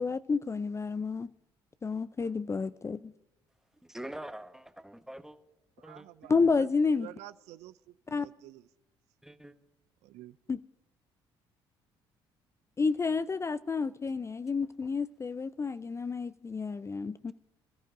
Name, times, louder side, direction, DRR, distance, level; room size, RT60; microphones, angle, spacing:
voice 1, 0.0-1.3 1.8-3.1 6.3-7.1 8.1-8.3 10.5-10.6 12.8-17.3, left 4 dB, 25° left, 0.4 m, -30 dB
voice 2, 3.8-5.4 5.8-6.5 9.2-9.5, right 1 dB, 5° right, 1.1 m, -45 dB
voice 3, 5.8-6.7 7.0-8.7 10.0-10.4, right 15 dB, 70° right, 0.4 m, -49 dB
27.0 x 14.0 x 2.6 m
hypercardioid pair, 55°, 12 cm